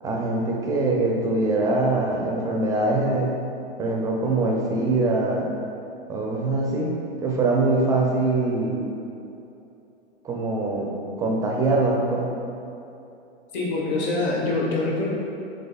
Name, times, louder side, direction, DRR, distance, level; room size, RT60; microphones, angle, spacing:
voice 1, 0.0-3.3 3.8-5.5 6.1-6.9 7.2-8.9 10.2-12.3, right 2 dB, 10° right, -1 dB, 0.4 m, -23 dB
voice 2, 13.5-15.1, left 2 dB, 35° left, -4 dB, 1.0 m, -24 dB
5.1 x 3.7 x 2.3 m, 2.8 s
hypercardioid pair, 110°, 32 cm